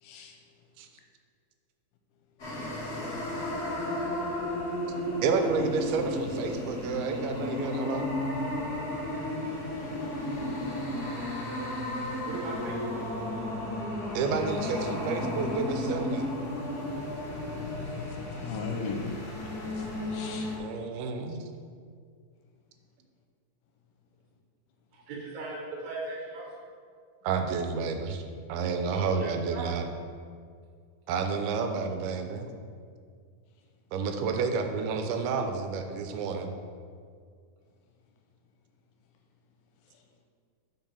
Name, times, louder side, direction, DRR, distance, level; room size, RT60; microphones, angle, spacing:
voice 1, 0.0-0.4 18.4-19.2 19.7-20.5 39.9-40.0, left 4 dB, 80° left, 3 dB, 2.2 m, -37 dB
sound 1, 2.4-20.6, left 1 dB, 45° left, 1.3 m, -33 dB
voice 2, 5.2-8.1 14.1-16.3 20.5-21.5 27.2-28.2 28.5-29.9 31.1-32.5 33.9-36.5, right 5 dB, 90° right, 5 dB, 2.5 m, -30 dB
voice 3, 12.3-13.0 16.7-17.0 24.9-26.5 28.9-29.7, right 2 dB, 70° right, -2 dB, 2.8 m, -38 dB
5.8 x 4.7 x 5.5 m, 2.1 s
omnidirectional pair, 4.3 m